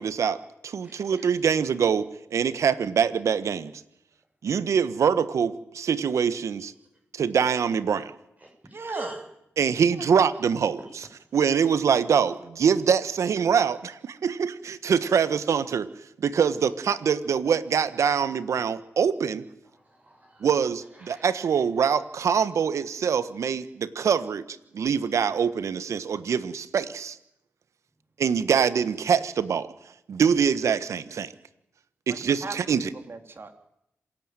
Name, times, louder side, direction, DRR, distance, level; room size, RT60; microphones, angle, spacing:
voice 1, 0.0-3.7 4.4-6.7 7.1-8.1 9.6-10.8 11.3-15.9 16.2-19.4 20.4-27.2 28.2-29.7 30.1-31.3 32.1-32.9, right 7 dB, 75° right, 14 dB, 1.4 m, -24 dB
voice 2, 0.8-1.4 8.4-9.3 10.8-10.9 19.7-20.5 20.9-21.3, right 1 dB, 30° right, 2 dB, 6.3 m, -44 dB
voice 3, 8.7-9.1 32.4-32.5 32.8-33.5, right 3 dB, 50° right, 7 dB, 3.5 m, -36 dB
27.0 x 17.0 x 9.1 m, 0.82 s
supercardioid pair, 45°, 5 cm